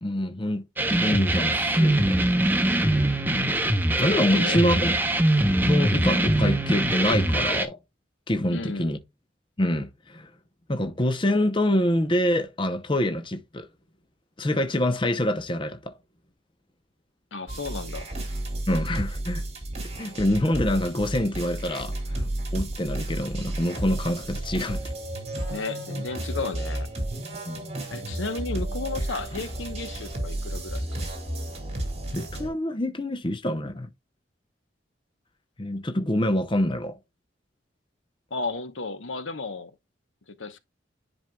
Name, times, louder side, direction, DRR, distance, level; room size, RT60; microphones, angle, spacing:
voice 1, 0.0-0.6 1.0-2.3 4.0-5.0 5.6-7.8 8.3-9.0 9.6-10.3 10.7-13.7 14.4-16.0 18.7-19.4 20.0-24.8 27.4-27.6 32.1-33.9 35.6-37.0, left 1 dB, 25° left, 0.7 m, -26 dB
sound 1, 0.8-7.7, right 1 dB, 10° right, 0.7 m, -22 dB
voice 2, 4.2-4.8 8.5-8.9 17.3-18.1 25.5-26.9 27.9-31.0 38.3-39.7 40.4-40.6, left 3 dB, 90° left, 1.0 m, -34 dB
sound 2, 17.5-32.5, right 1 dB, 35° right, 2.5 m, -32 dB
10.5 x 4.5 x 2.3 m
head